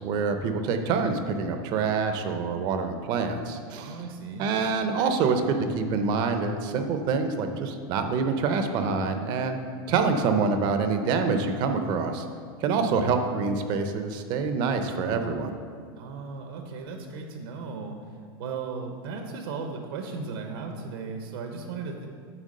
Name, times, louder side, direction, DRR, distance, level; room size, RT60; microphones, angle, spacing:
voice 1, 0.0-3.9 4.4-9.6 9.9-12.2 12.6-15.5, right 5 dB, 35° right, 7 dB, 0.6 m, -26 dB
voice 2, 3.7-4.5 12.7-13.0 16.0-22.1, right 4 dB, 70° right, 4 dB, 0.8 m, -36 dB
9.1 x 3.5 x 6.4 m, 2.2 s
supercardioid pair, 160°, 13 cm